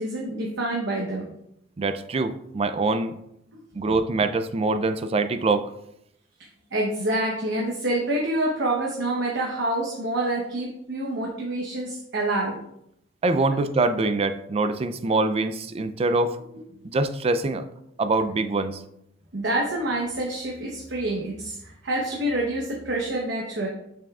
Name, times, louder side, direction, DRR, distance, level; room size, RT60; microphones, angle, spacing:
voice 1, 0.0-1.3 6.7-12.6 16.8-16.9 19.3-23.7, right 1 dB, 65° right, -2 dB, 0.9 m, -27 dB
voice 2, 1.8-3.2 3.7-5.7 13.2-16.4 16.8-17.7 18.0-18.8, right 3 dB, 30° right, 11 dB, 0.4 m, -24 dB
6.8 x 6.1 x 2.4 m, 0.77 s
head